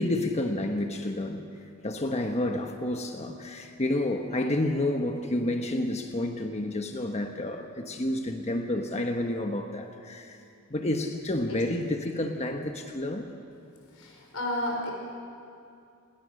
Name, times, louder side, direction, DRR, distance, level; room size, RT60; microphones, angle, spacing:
voice 1, 0.0-10.4 10.7-13.3, left 1 dB, 30° left, 4 dB, 1.2 m, -30 dB
voice 2, 13.9-14.9, left 1 dB, 75° left, 0 dB, 5.3 m, -32 dB
28.0 x 20.5 x 6.5 m, 2.5 s
head